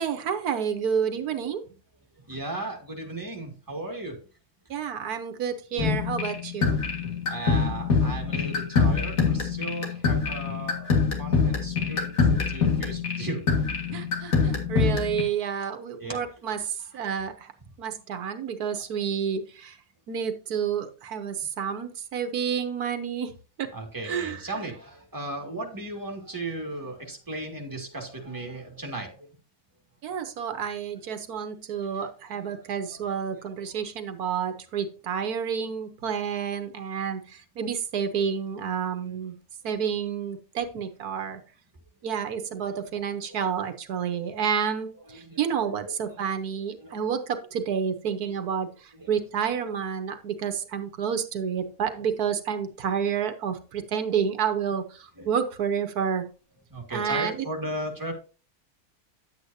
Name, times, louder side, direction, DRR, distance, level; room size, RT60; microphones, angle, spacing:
voice 1, 0.0-1.6 4.7-6.8 13.9-17.5 17.8-19.8 20.1-23.3 23.6-23.7 24.0-24.4 30.0-39.3 39.6-41.4 42.0-56.2 56.9-57.4, right 7 dB, 85° right, 8 dB, 1.5 m, -29 dB
voice 2, 2.2-4.2 7.3-12.1 12.5-13.4 15.6-16.2 23.7-29.3 31.8-31.9 32.5-33.0 42.7-42.8 43.4-43.6 45.1-45.5 45.8-46.2 46.5-47.0 48.9-49.1 49.7-49.8 51.5-51.7 52.0-52.1 55.2-55.3 56.7-58.1, right 2 dB, 15° right, 1 dB, 2.2 m, -36 dB
sound 1, 5.8-15.2, left 5 dB, 65° left, 2.4 m, -25 dB
11.0 x 8.1 x 2.7 m, 0.36 s
omnidirectional pair, 1.6 m